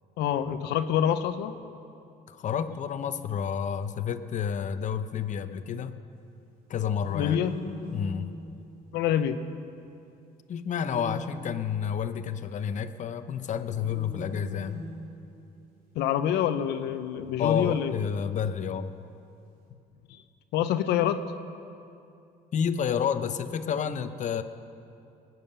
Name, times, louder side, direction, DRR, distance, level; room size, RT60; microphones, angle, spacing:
voice 1, 0.2-1.5 7.1-7.5 8.9-9.4 16.0-17.9 20.1-20.2 20.5-21.2, left 10 dB, 85° left, 10 dB, 0.8 m, -26 dB
voice 2, 2.3-5.9 6.7-7.4 7.9-8.3 10.5-14.8 17.4-18.9 22.5-24.4, left 8 dB, 45° left, 10 dB, 0.8 m, -30 dB
sound 1, 6.9-9.2 10.8-12.0 13.7-16.0 17.3-18.4, left 1 dB, 60° right, 3.7 m, -41 dB
20.5 x 9.4 x 6.8 m, 2.6 s
cardioid pair, 110°, 17 cm